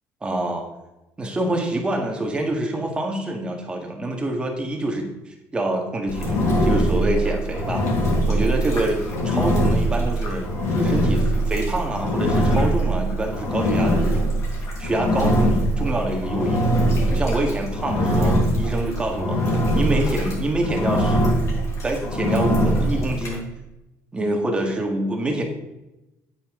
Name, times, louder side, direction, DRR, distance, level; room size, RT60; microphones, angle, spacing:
voice 1, 0.2-0.7 1.2-7.9 8.3-14.3 14.8-16.7 17.1-21.2 21.8-23.5 24.1-25.4, right 1 dB, 15° right, 1 dB, 1.8 m, -26 dB
Engine, 6.1-23.4, equal, 50° left, 3.8 m, -22 dB
8.8 x 8.6 x 3.8 m, 0.96 s
cardioid pair, 135°, 7 cm